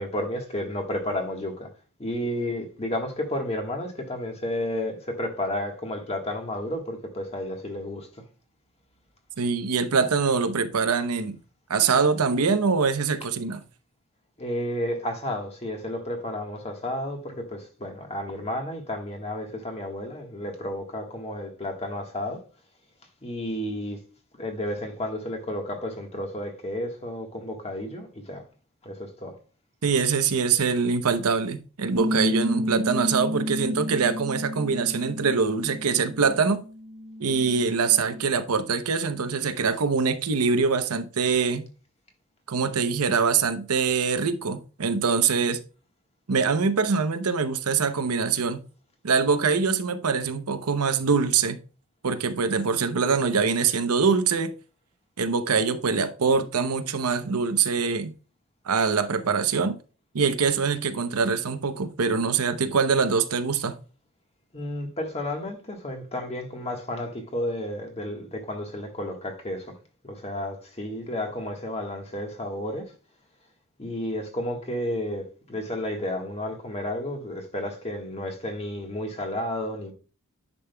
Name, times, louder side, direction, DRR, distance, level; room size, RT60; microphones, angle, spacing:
voice 1, 0.0-1.7 2.0-8.1 14.4-22.4 23.2-24.0 24.4-28.4 28.8-29.4 64.5-69.7 70.0-72.9 73.8-79.9, left 1 dB, 30° left, 1.4 m, -32 dB
voice 2, 9.4-11.4 11.7-13.6 29.8-36.6 37.2-41.7 42.5-45.6 46.3-48.6 49.0-51.6 52.0-54.5 55.2-58.1 58.7-59.8 60.1-63.8, right 5 dB, 85° right, 0.7 m, -24 dB
sound 1, 32.0-38.2, left 1 dB, 40° right, 0.8 m, -31 dB
9.9 x 5.3 x 2.2 m
head